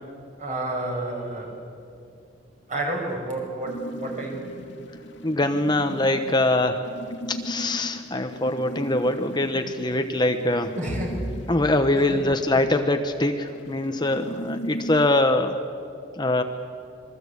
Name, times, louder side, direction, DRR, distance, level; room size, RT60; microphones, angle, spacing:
voice 1, 0.4-1.6 2.7-4.6 10.8-11.2 11.9-12.2, right 1 dB, 40° right, 0 dB, 6.2 m, -30 dB
sound 1, 3.7-15.1, equal, 70° left, 1.8 m, -38 dB
voice 2, 5.2-6.9 7.3-10.8 11.5-15.6 16.2-16.4, left 2 dB, 25° left, 6 dB, 1.0 m, -23 dB
26.5 x 22.5 x 8.4 m, 2.5 s
head